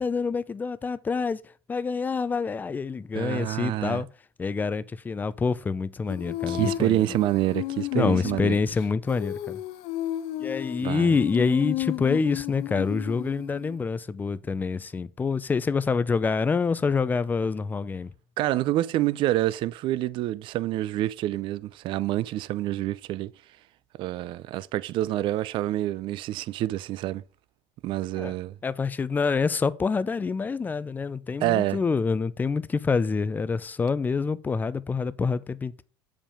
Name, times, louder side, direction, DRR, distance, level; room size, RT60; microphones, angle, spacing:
voice 1, 0.0-1.4 1.7-4.1 4.4-7.1 8.0-9.6 10.4-18.1 28.1-28.3 28.6-35.8, left 5 dB, 15° left, 0.4 m, -26 dB
voice 2, 3.1-4.0 6.5-8.6 10.8-11.1 18.4-23.3 24.0-27.2 27.8-28.5 31.4-31.8, right 14 dB, 50° right, 0.4 m, -27 dB
Female singing, 6.1-13.8, left 15 dB, 70° left, 0.7 m, -33 dB
7.3 x 5.3 x 4.9 m
supercardioid pair, 120°, 11 cm